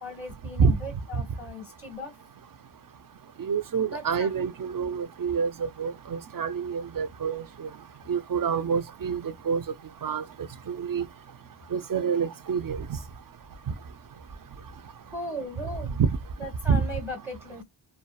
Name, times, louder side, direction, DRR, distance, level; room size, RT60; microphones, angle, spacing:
voice 1, 0.0-2.2 3.9-4.3 15.1-16.0 16.4-17.6, equal, 5° right, 0.9 m, -37 dB
voice 2, 3.4-7.7 8.1-9.6 10.0-10.2 10.7-11.0 11.7-12.9 16.0-16.1 16.7-16.9, right 6 dB, 50° right, 0.4 m, -27 dB
2.6 x 2.2 x 2.2 m
wide cardioid pair, 45°, 46 cm